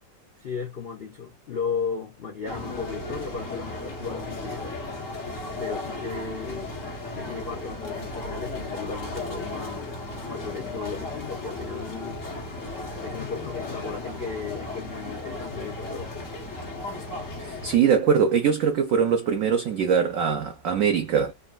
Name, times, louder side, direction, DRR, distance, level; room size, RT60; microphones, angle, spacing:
voice 1, 0.4-4.8 5.6-6.8 7.1-10.0 10.3-12.2 13.0-16.1, left 5 dB, 75° left, 0.5 m, -35 dB
sound 1, 2.4-17.8, left 2 dB, 50° left, 1.4 m, -35 dB
voice 2, 17.4-21.3, right 7 dB, 90° right, 0.7 m, -22 dB
3.7 x 2.0 x 2.4 m
omnidirectional pair, 2.0 m